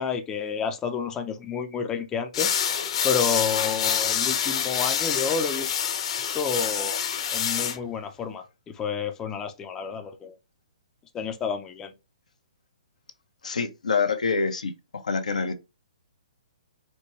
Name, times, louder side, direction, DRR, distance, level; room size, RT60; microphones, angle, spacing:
voice 1, 0.0-2.5 3.0-5.7 6.3-7.0 7.3-10.3 11.1-11.9, left 6 dB, 15° left, 0.6 m, -30 dB
sound 1, 2.3-7.8, left 8 dB, 55° left, 0.9 m, -26 dB
voice 2, 13.4-14.7 15.0-15.5, left 5 dB, 85° left, 0.8 m, -26 dB
4.4 x 2.2 x 3.0 m
hypercardioid pair, 140°, 4 cm